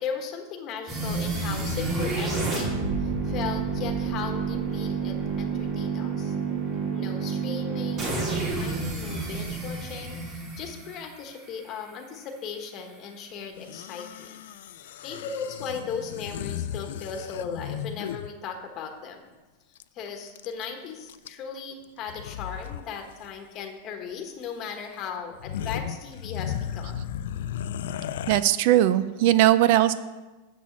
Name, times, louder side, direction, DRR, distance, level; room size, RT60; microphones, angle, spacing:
voice 1, 0.0-6.4 6.9-14.4 14.7-19.2 19.9-27.0, left 6 dB, 30° left, 3 dB, 1.2 m, -37 dB
sound 1, 0.9-11.8, right 4 dB, 25° right, 2.6 m, -29 dB
sound 2, 13.6-18.3 19.8-19.9 20.1-20.7 21.1-21.6 22.1-22.8 23.1-23.3 24.4-24.5 25.0-25.1 25.3-28.4, left 9 dB, 75° left, 0.3 m, -35 dB
voice 2, 28.3-29.9, right 13 dB, 50° right, 14 dB, 0.4 m, -19 dB
7.3 x 6.2 x 7.1 m, 1.2 s
supercardioid pair, 160°, 0 cm